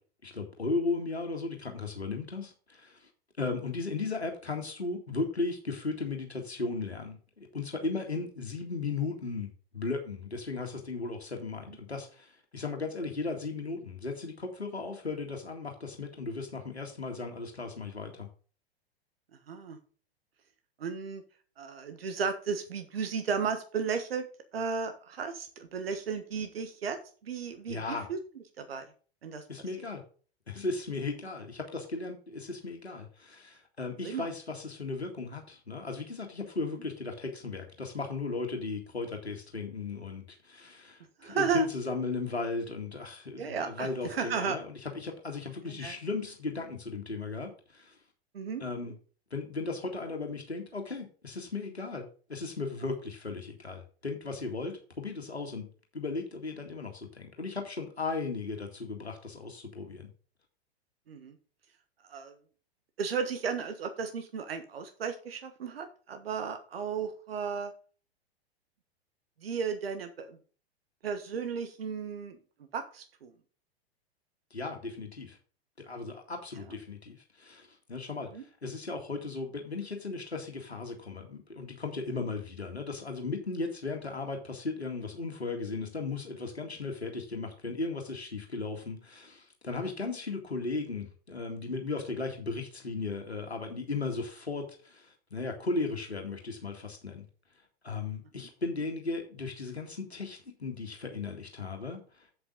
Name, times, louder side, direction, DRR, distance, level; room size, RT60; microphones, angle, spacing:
voice 1, 0.2-3.1 3.4-18.3 27.7-28.1 29.5-30.0 30.5-48.0 48.6-49.0 49.3-55.7 55.9-60.1 74.5-75.4 75.8-97.2 97.8-102.3, left 3 dB, 80° left, 3 dB, 2.1 m, -36 dB
voice 2, 19.5-19.8 20.8-21.2 21.6-24.2 24.5-28.2 28.6-28.9 29.2-29.4 34.0-34.3 41.2-41.7 43.4-44.6 45.7-45.9 48.3-48.6 61.1-61.4 62.1-62.4 63.0-67.7 69.4-70.4 71.0-72.4 72.7-73.3 76.7-76.8 78.3-78.4, right 6 dB, 65° right, 8 dB, 1.4 m, -34 dB
8.0 x 7.8 x 3.8 m, 0.39 s
figure-of-eight pair, 100°, 32 cm